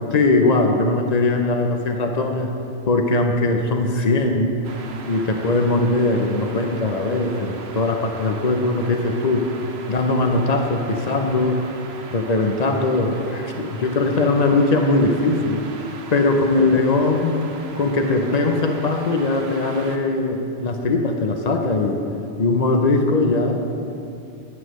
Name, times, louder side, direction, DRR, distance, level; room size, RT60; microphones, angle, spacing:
voice 1, 0.1-2.5 2.9-4.6 5.1-9.5 9.9-11.6 12.1-15.6 16.1-17.4 17.8-22.0 22.4-23.7, left 2 dB, 50° left, 4 dB, 0.5 m, -20 dB
sound 1, 4.6-20.0, right 4 dB, 65° right, 0.9 m, -39 dB
9.2 x 8.3 x 3.1 m, 2.6 s
omnidirectional pair, 1.2 m